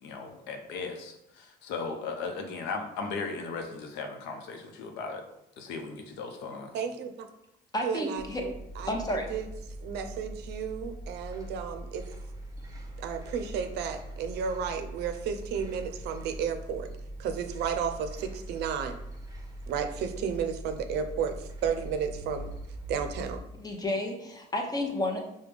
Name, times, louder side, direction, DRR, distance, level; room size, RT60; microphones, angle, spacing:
voice 1, 0.0-5.2 5.6-6.8, left 4 dB, 85° left, 4 dB, 0.7 m, -37 dB
voice 2, 6.7-7.3 7.8-8.5 8.8-9.5 9.8-12.0 13.0-16.9 17.2-19.0 19.7-22.5 22.9-23.4, right 7 dB, 80° right, 8 dB, 0.5 m, -33 dB
voice 3, 7.7-8.4 8.9-9.3 23.6-25.2, left 1 dB, 20° left, 2 dB, 0.8 m, -31 dB
sound 1, 8.2-23.4, right 1 dB, 20° right, 0.8 m, -42 dB
4.9 x 2.2 x 3.3 m, 0.85 s
cardioid pair, 110°, 17 cm